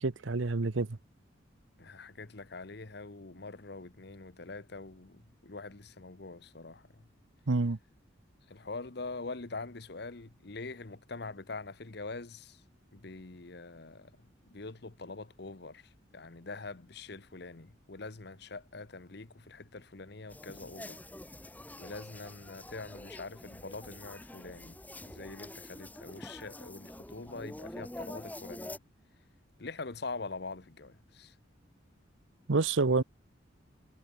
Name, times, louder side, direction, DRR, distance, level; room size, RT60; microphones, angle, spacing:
voice 1, 0.0-1.0 7.5-7.8 32.5-33.0, right 3 dB, 80° right, 0.9 m, -28 dB
voice 2, 1.8-7.1 8.5-12.6 12.9-21.0 21.8-28.8 29.6-31.3, left 3 dB, 55° left, 1.1 m, -44 dB
sound 1, 20.3-28.8, left 1 dB, 10° left, 1.3 m, -46 dB
head